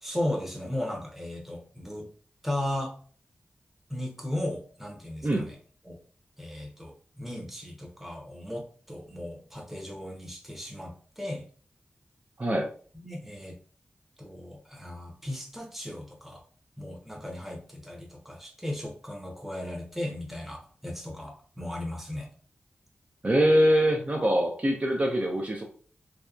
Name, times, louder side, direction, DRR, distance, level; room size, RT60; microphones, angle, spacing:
voice 1, 0.0-2.1 2.4-2.9 3.9-5.6 5.8-6.0 6.4-11.5 13.0-13.6 14.2-16.4 16.8-22.3, left 1 dB, 5° right, 0 dB, 0.8 m, -36 dB
voice 2, 23.2-25.6, equal, 40° right, 0 dB, 0.5 m, -23 dB
2.7 x 2.2 x 2.4 m, 0.43 s
cardioid pair, 50°, 4 cm